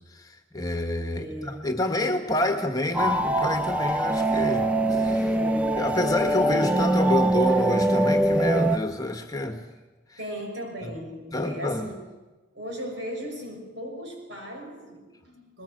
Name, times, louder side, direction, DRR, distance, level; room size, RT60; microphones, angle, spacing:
voice 1, 0.5-5.3 5.8-9.6 10.8-10.9 11.3-11.9, left 1 dB, 20° left, 1.4 m, -28 dB
voice 2, 1.1-1.7 5.2-5.9 10.2-12.1 12.5-15.6, equal, 70° right, 6.4 m, -37 dB
sound 1, 2.9-8.8, right 1 dB, 5° right, 0.7 m, -23 dB
21.0 x 19.5 x 7.9 m
head